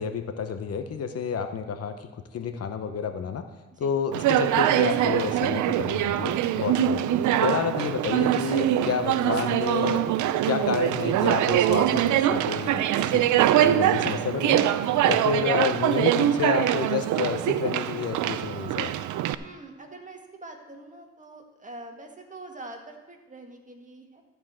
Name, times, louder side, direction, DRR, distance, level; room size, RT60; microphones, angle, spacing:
voice 1, 0.0-2.1 2.3-3.5 3.8-7.0 7.4-10.0 10.4-13.3 13.6-14.7 15.1-19.0, left 6 dB, 55° left, 8 dB, 0.9 m, -29 dB
Conversation, 4.1-19.3, right 12 dB, 75° right, 0.6 m, -23 dB
voice 2, 19.3-24.2, right 2 dB, 25° right, 3 dB, 1.8 m, -44 dB
13.5 x 4.7 x 7.5 m, 1.1 s
cardioid pair, 90°, 30 cm